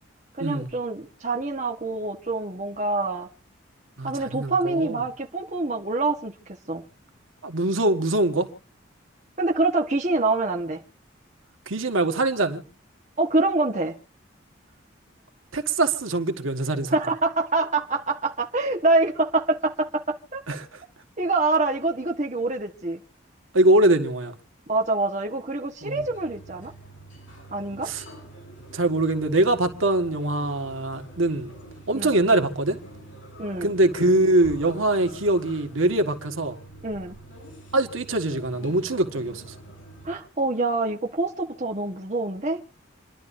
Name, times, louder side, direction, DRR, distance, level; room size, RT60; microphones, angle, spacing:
voice 1, 0.4-3.3 4.0-6.8 9.4-10.8 13.2-14.0 16.9-20.4 21.2-23.0 24.7-26.7 27.5-27.9 31.9-32.2 33.4-33.7 36.8-37.2 40.0-42.6, right 2 dB, 35° right, 1.3 m, -25 dB
voice 2, 4.0-5.0 7.4-8.5 11.7-12.6 15.5-16.9 20.5-20.8 23.5-24.3 25.8-26.0 27.8-28.0 28.7-31.5 31.9-32.8 33.6-36.6 37.7-39.5, right 2 dB, 85° right, 1.6 m, -23 dB
sound 1, 25.9-40.2, right 1 dB, 80° left, 7.1 m, -45 dB
28.5 x 11.5 x 2.7 m
head